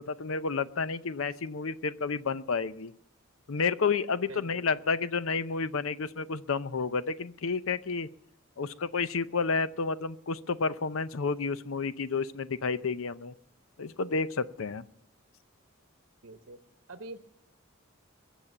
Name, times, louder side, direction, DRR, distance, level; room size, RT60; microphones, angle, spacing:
voice 1, 0.0-2.9 3.5-8.1 8.6-13.3 13.8-14.8, left 4 dB, 75° left, 14 dB, 0.7 m, -30 dB
voice 2, 4.3-4.6 16.2-16.6 16.9-17.2, right 2 dB, 70° right, 8 dB, 0.9 m, -44 dB
22.0 x 7.4 x 7.3 m, 0.71 s
head